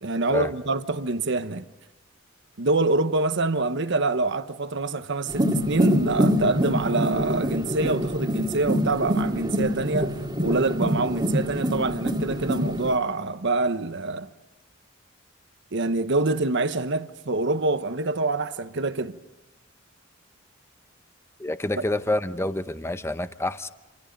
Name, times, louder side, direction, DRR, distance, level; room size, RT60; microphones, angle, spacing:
voice 1, 0.0-1.6 2.6-14.3 15.7-19.2 21.8-21.9, right 3 dB, 65° right, 1.2 m, -25 dB
sound 1, 5.3-13.0, equal, 20° right, 2.0 m, -25 dB
voice 2, 21.4-23.7, left 1 dB, 15° left, 0.8 m, -27 dB
28.5 x 28.0 x 5.3 m
head